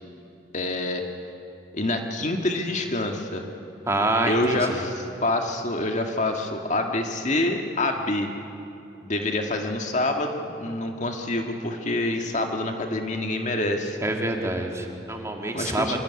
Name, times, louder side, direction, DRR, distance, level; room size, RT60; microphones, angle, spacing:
voice 1, 0.5-1.0 1.7-3.4 4.3-8.3 9.0-14.0 15.5-16.0, left 2 dB, 40° left, 3 dB, 2.0 m, -26 dB
voice 2, 3.9-4.8 14.0-16.0, right 2 dB, 15° right, 2 dB, 2.3 m, -26 dB
25.0 x 23.0 x 9.8 m, 2.7 s
head